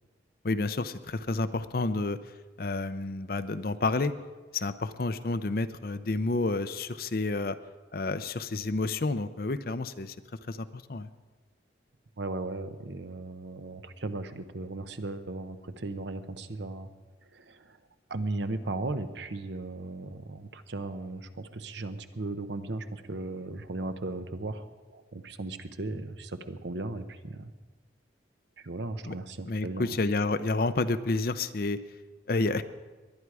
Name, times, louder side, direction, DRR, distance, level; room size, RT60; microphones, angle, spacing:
voice 1, 0.4-2.2 2.6-4.1 4.5-7.6 7.9-10.1 10.5-11.1 29.0-29.1 29.4-31.8 32.3-32.6, left 3 dB, 50° left, 12 dB, 0.6 m, -30 dB
voice 2, 12.2-16.9 17.3-17.8 18.1-27.5 28.6-30.0, right 2 dB, 70° right, 10 dB, 0.9 m, -36 dB
20.5 x 11.5 x 4.8 m, 1.3 s
head